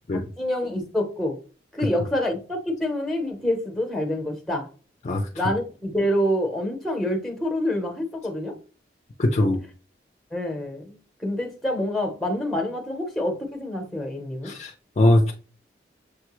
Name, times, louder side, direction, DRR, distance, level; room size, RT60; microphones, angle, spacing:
voice 1, 0.1-1.4 1.7-4.7 5.3-8.5 10.3-14.5, left 1 dB, ahead, 0.8 m, -27 dB
voice 2, 9.2-9.6 14.5-15.3, left 1 dB, 40° left, 0.4 m, -21 dB
6.5 x 2.2 x 3.0 m
head